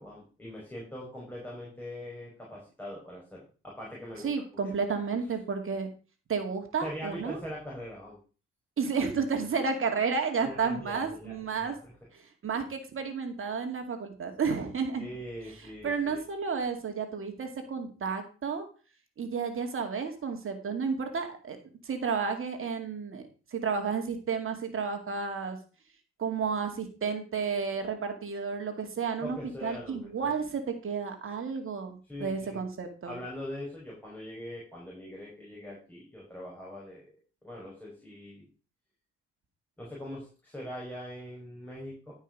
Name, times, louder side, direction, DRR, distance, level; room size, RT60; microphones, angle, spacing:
voice 1, 0.0-4.3 6.8-8.2 10.4-11.4 11.6-11.9 15.0-16.2 29.2-30.3 32.1-32.6 33.1-37.1 37.4-38.4 39.8-42.1, left 1 dB, 5° left, -5 dB, 5.4 m, -42 dB
voice 2, 4.2-5.9 6.3-7.4 8.8-11.8 12.1-15.1 15.5-18.7 19.2-21.6 21.8-23.2 23.5-25.6 26.2-33.2, right 5 dB, 45° right, 5 dB, 2.3 m, -32 dB
12.0 x 5.6 x 5.2 m, 0.36 s
supercardioid pair, 80°, 29 cm